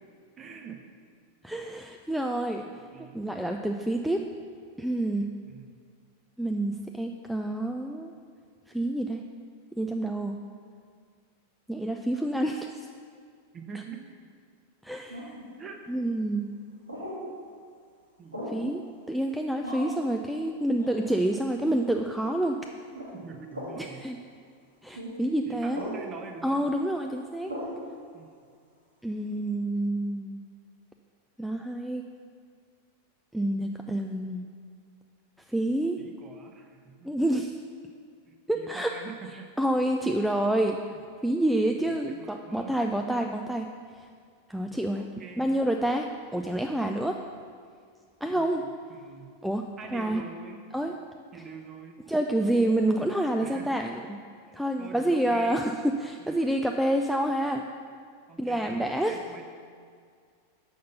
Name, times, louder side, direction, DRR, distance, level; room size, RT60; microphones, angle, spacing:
voice 1, 0.4-0.8 2.6-3.2 5.4-5.8 13.5-14.1 15.6-15.8 18.2-18.7 23.1-24.1 25.5-26.7 28.1-28.5 36.0-37.1 38.3-39.5 40.8-41.0 42.1-43.1 44.6-45.6 48.3-49.3 49.8-50.6 51.3-52.0 53.4-53.9 54.5-55.7 56.2-56.5 58.3-59.4, right 5 dB, 25° right, 4 dB, 0.9 m, -45 dB
voice 2, 1.4-2.6 3.1-4.2 4.8-5.3 6.4-8.1 8.7-9.2 9.8-10.4 11.7-12.7 14.8-15.3 15.9-16.5 18.5-18.8 19.1-22.6 23.8-24.2 24.8-25.8 26.4-27.5 29.0-30.4 31.4-32.0 33.3-34.5 35.5-36.0 37.0-37.6 38.5-38.9 39.6-40.8 41.2-43.7 44.0-44.1 44.5-45.1 45.4-47.2 48.2-48.6 49.4-50.2 50.7-50.9 52.1-54.0 54.5-55.7 56.0-57.6 58.4-59.2, right 1 dB, ahead, 3 dB, 0.3 m, -28 dB
Pidgeon Interjection, 15.1-15.5 16.9-17.2 18.3-18.6 19.6-20.0 20.8-21.0 21.6-21.8 22.9-23.1 23.5-23.8 24.9-25.1 25.7-26.0 27.5-27.8, equal, 80° right, 1.9 m, -37 dB
6.5 x 5.5 x 6.6 m, 2.1 s
figure-of-eight pair, 90°, 0 cm